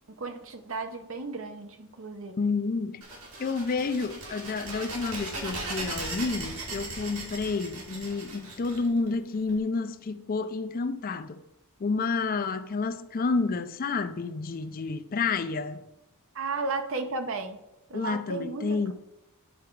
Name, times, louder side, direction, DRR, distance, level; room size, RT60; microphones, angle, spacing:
voice 1, 0.2-2.4 16.3-17.6 17.9-18.9, right 3 dB, 65° right, 0.9 m, -34 dB
voice 2, 2.4-3.0 3.4-11.4 11.8-15.8 17.9-18.9, left 4 dB, 40° left, 0.4 m, -30 dB
sound 1, 3.0-9.5, right 2 dB, 85° right, 2.4 m, -38 dB
10.0 x 4.8 x 4.6 m
head